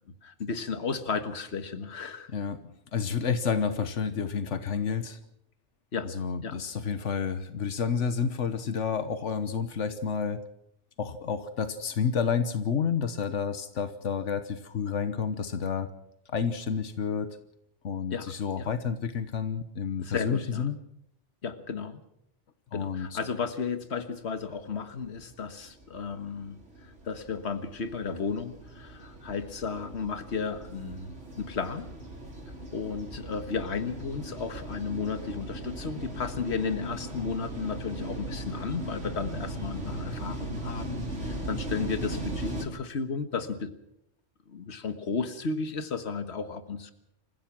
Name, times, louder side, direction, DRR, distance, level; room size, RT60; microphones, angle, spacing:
voice 1, 0.2-2.3 5.9-6.1 6.4-6.6 18.1-18.3 18.6-18.7 20.0-20.7 21.4-22.0 22.7-31.9 32.7-43.7 44.5-46.9, left 5 dB, 65° left, 10 dB, 1.7 m, -34 dB
voice 2, 2.9-5.2 6.0-10.4 11.0-15.9 16.3-17.4 17.8-20.8 22.7-23.2, left 6 dB, 90° left, 11 dB, 1.5 m, -30 dB
sound 1, 24.9-42.6, right 1 dB, 90° right, 4.5 m, -38 dB
28.0 x 15.5 x 6.1 m, 0.78 s
omnidirectional pair, 1.2 m